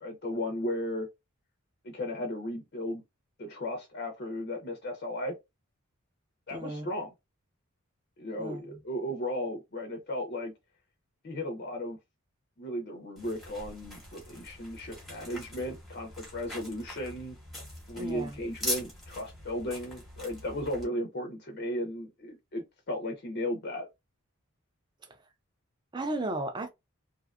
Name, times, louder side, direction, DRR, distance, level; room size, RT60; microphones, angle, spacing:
voice 1, 0.0-1.1 1.8-3.0 3.4-5.3 6.5-7.1 8.2-10.5 11.2-12.0 12.6-17.4 17.9-23.9, left 1 dB, 45° left, 0.5 m, -35 dB
voice 2, 6.5-6.9 8.4-8.8 18.0-18.4 25.1-25.2 25.9-26.7, right 1 dB, 20° right, 0.3 m, -35 dB
sound 1, 13.2-20.9, left 1 dB, ahead, 0.9 m, -42 dB
2.6 x 2.3 x 2.4 m
head